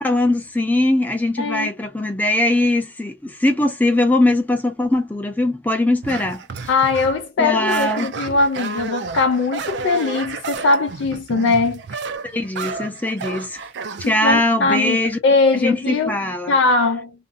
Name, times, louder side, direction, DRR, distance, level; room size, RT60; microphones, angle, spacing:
voice 1, 0.0-6.4 7.4-8.1 12.2-13.6 14.0-15.2 15.5-16.5, left 1 dB, 10° left, 0.5 m, -20 dB
voice 2, 1.4-1.7 6.7-11.8 14.0-16.1 16.5-17.1, left 3 dB, 80° left, 0.3 m, -20 dB
sound 1, 6.0-7.2 7.7-14.1, right 5 dB, 75° right, 0.4 m, -31 dB
2.5 x 2.1 x 2.5 m
head